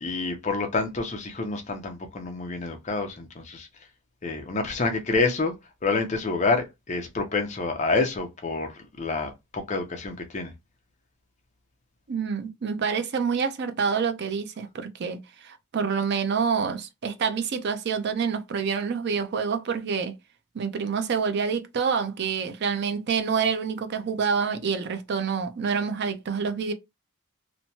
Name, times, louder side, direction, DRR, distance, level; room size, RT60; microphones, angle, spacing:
voice 1, 0.0-3.7 4.2-5.5 5.8-10.5, left 3 dB, 35° left, 0.6 m, -28 dB
voice 2, 12.1-20.1 20.5-26.7, right 6 dB, 50° right, 0.4 m, -27 dB
2.9 x 2.2 x 2.7 m
head